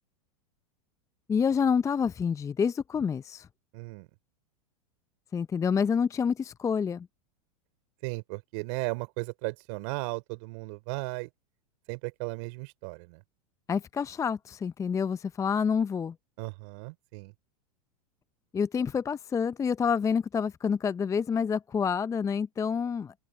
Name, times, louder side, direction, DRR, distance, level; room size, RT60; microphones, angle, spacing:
voice 1, 1.3-3.5 5.3-7.1 13.7-16.2 18.5-23.1, left 6 dB, 15° left, 0.5 m, -28 dB
voice 2, 3.7-4.1 8.0-11.3 11.9-13.2 16.4-17.3, right 30 dB, 55° right, 4.3 m, -36 dB
open air
hypercardioid pair, 95°, 19 cm